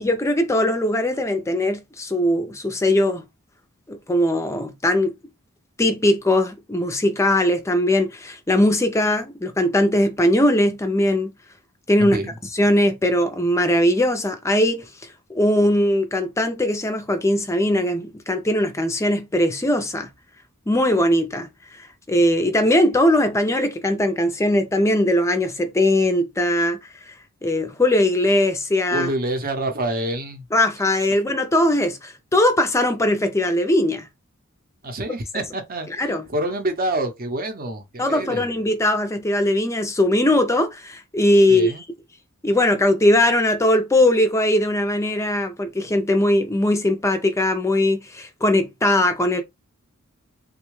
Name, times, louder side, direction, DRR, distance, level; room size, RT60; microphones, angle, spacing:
voice 1, 0.0-3.2 3.9-5.1 5.8-11.3 11.9-12.2 12.5-14.9 15.3-20.1 20.7-21.5 21.8-26.8 27.1-27.2 27.4-29.1 30.5-34.1 36.0-36.2 38.0-41.7 42.4-49.4, left 1 dB, 15° left, 0.4 m, -20 dB
voice 2, 12.0-12.4 28.9-30.4 34.8-38.4 41.5-41.8, right 1 dB, 40° right, 0.7 m, -27 dB
3.4 x 2.2 x 3.1 m
head